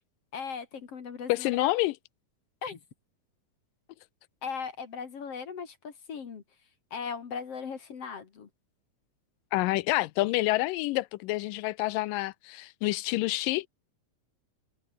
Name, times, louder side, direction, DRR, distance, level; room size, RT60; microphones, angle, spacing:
voice 1, 0.3-1.7 2.6-2.8 4.4-6.4 6.9-8.5, left 6 dB, 50° left, 3.0 m, -38 dB
voice 2, 1.3-1.9 9.5-13.7, left 19 dB, 85° left, 2.3 m, -28 dB
omnidirectional pair, 3.9 m